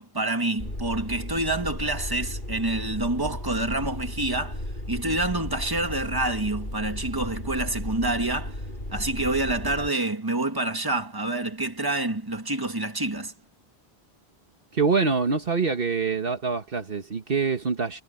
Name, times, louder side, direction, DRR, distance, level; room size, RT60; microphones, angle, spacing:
voice 1, 0.0-8.6 8.9-13.3, right 2 dB, 20° right, 2.0 m, -27 dB
sound 1, 0.6-9.9, left 1 dB, 50° left, 6.5 m, -35 dB
voice 2, 14.7-18.0, right 4 dB, 60° right, 1.5 m, -25 dB
omnidirectional pair, 1.1 m